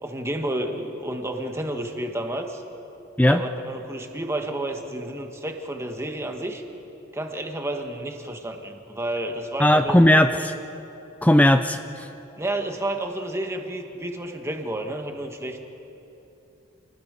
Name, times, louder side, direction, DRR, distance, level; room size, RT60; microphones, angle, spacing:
voice 1, 0.0-2.6 3.2-6.6 7.1-10.0 10.4-10.5 12.4-15.6, right 1 dB, 15° right, 3 dB, 1.5 m, -30 dB
voice 2, 9.6-10.5 11.2-11.8, left 1 dB, 5° left, 8 dB, 0.5 m, -17 dB
28.5 x 19.5 x 5.2 m, 3.0 s
head